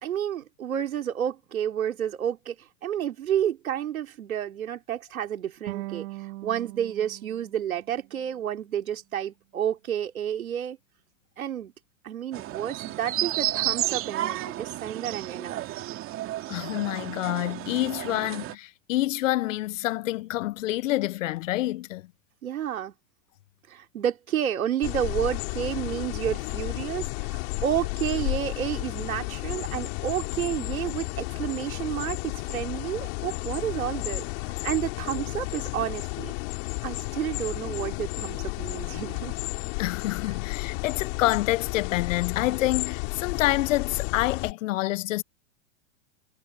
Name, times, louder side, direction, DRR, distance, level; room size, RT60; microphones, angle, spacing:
voice 1, 0.0-10.8 11.4-11.7 12.0-15.6 22.4-22.9 23.7-34.2 34.6-36.3 36.8-39.3, right 10 dB, 90° right, 3.2 m, -30 dB
Clean G str pluck, 5.7-8.8, right 20 dB, 55° right, 4.7 m, -41 dB
sound 1, 12.3-18.5, right 14 dB, 30° right, 2.5 m, -32 dB
voice 2, 16.5-22.0 39.8-45.2, left 16 dB, 65° left, 0.7 m, -27 dB
sound 2, 24.8-44.5, left 30 dB, 50° left, 3.0 m, -32 dB
hypercardioid pair, 135°, 41 cm